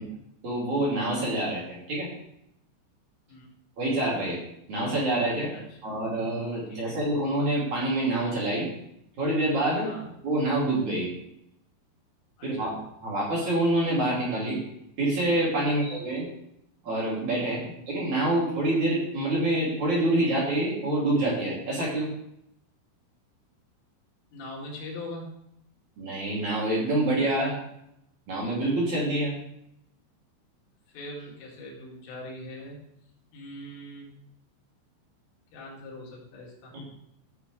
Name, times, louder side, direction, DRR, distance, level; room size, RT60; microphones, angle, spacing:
voice 1, 0.4-2.1 3.8-4.4 4.7-5.5 5.8-8.7 9.2-9.9 10.2-11.1 12.4-14.6 15.0-16.3 16.8-22.1 26.0-27.5 28.3-29.3, right 1 dB, 45° right, -5 dB, 3.7 m, -26 dB
voice 2, 5.5-5.9 6.7-7.0 9.8-10.1 12.4-12.7 15.6-15.9 17.4-17.7 24.3-25.4 30.9-32.8 33.3-34.1 35.5-36.7, left 1 dB, 85° left, -2 dB, 4.9 m, -42 dB
15.5 x 7.3 x 3.3 m, 0.78 s
omnidirectional pair, 5.6 m